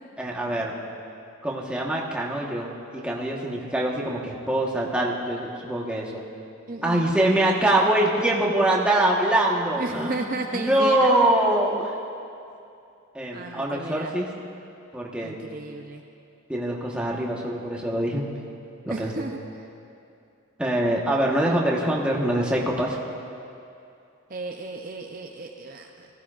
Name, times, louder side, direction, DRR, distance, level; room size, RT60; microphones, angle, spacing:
voice 1, 0.2-0.7 1.4-6.2 6.8-10.1 10.5-11.9 13.1-14.3 14.9-15.4 16.5-18.3 18.9-19.1 20.6-23.0, right 1 dB, 5° right, -3 dB, 1.2 m, -24 dB
voice 2, 6.7-7.1 9.8-11.1 13.3-14.1 15.2-16.0 18.9-19.4 24.3-26.1, right 3 dB, 40° right, 3 dB, 0.5 m, -34 dB
18.5 x 15.0 x 2.5 m, 2.6 s
head